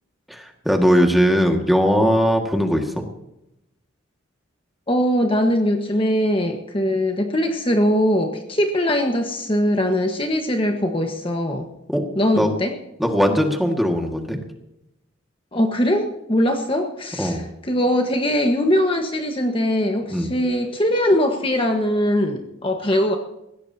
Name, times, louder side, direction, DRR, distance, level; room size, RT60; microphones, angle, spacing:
voice 1, 0.3-3.0 11.9-12.0 12.4-12.5 13.0-14.4 17.2-17.5 20.1-20.3, equal, ahead, 2 dB, 1.9 m, -19 dB
voice 2, 4.9-11.7 12.1-12.7 15.5-23.2, equal, 25° left, 3 dB, 1.4 m, -21 dB
21.0 x 17.0 x 2.9 m, 0.87 s
head